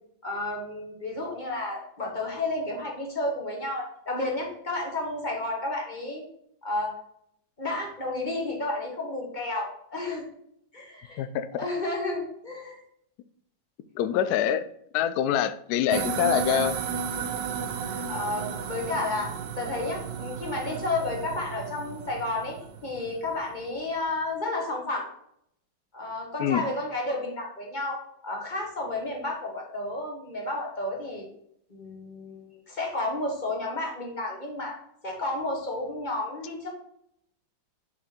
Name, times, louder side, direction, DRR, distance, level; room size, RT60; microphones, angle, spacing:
voice 1, 0.2-6.2 6.6-6.9 7.6-10.2 10.7-11.2 11.6-12.8 14.2-14.3 15.2-15.3 17.3-17.4 17.8-22.6 22.8-25.1 25.9-31.3 31.7-34.8 35.0-36.7, left 2 dB, 25° left, -1 dB, 1.5 m, -32 dB
voice 2, 13.9-14.7 14.9-16.8 26.4-26.6, left 10 dB, 75° left, 12 dB, 0.9 m, -25 dB
sound 1, 15.9-23.5, right 7 dB, 75° right, 1.2 m, -33 dB
6.2 x 4.2 x 4.4 m, 0.72 s
omnidirectional pair, 2.1 m